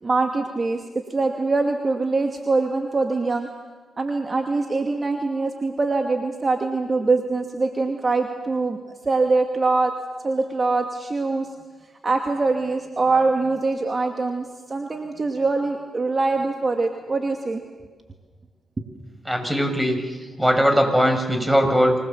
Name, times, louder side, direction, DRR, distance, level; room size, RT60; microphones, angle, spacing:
voice 1, 0.0-0.8 1.1-3.5 4.0-8.8 9.0-9.9 10.2-11.5 12.0-17.6 18.8-18.9, right 3 dB, 40° right, 3 dB, 2.5 m, -23 dB
voice 2, 19.3-20.0 20.4-22.0, equal, 5° right, 5 dB, 7.0 m, -19 dB
27.5 x 20.5 x 7.5 m, 1.3 s
hypercardioid pair, 40°, 0 cm